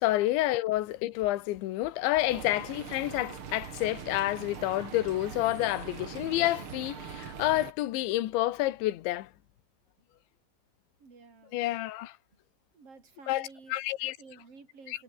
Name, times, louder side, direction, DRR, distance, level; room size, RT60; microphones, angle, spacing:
voice 1, 0.0-9.3 11.5-12.1 13.3-14.2 14.9-15.0, left 16 dB, 80° left, 3.6 m, -29 dB
sound 1, 2.3-7.7, right 7 dB, 55° right, 1.5 m, -42 dB
voice 2, 11.0-11.6 12.7-13.8 14.2-15.0, right 4 dB, 30° right, 5.6 m, -52 dB
omnidirectional pair, 5.3 m